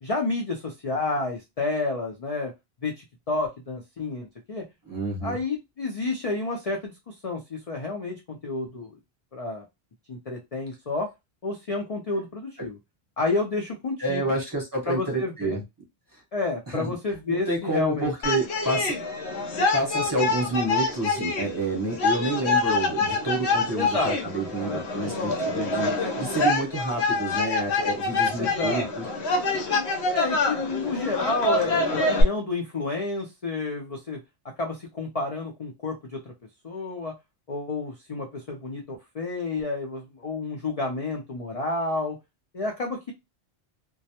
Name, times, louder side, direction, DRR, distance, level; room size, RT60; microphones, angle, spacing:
voice 1, 0.0-2.5 2.8-4.6 5.2-8.9 9.3-9.6 10.1-11.1 11.4-12.8 13.2-14.2 14.9-15.6 16.3-18.1 23.8-24.2 24.6-25.2 28.4-28.9 30.1-34.2 34.6-36.2 36.6-37.1 37.5-42.2 42.5-43.1, left 3 dB, 50° left, 1 dB, 0.4 m, -30 dB
voice 2, 4.9-5.4 14.0-15.6 16.1-16.2 16.7-16.9 17.3-19.0 19.7-29.0 29.3-29.4, right 2 dB, 20° right, -3 dB, 0.7 m, -29 dB
sound 1, 18.2-32.2, left 3 dB, 75° left, 0.9 m, -26 dB
2.2 x 2.1 x 2.7 m, 0.22 s
omnidirectional pair, 1.1 m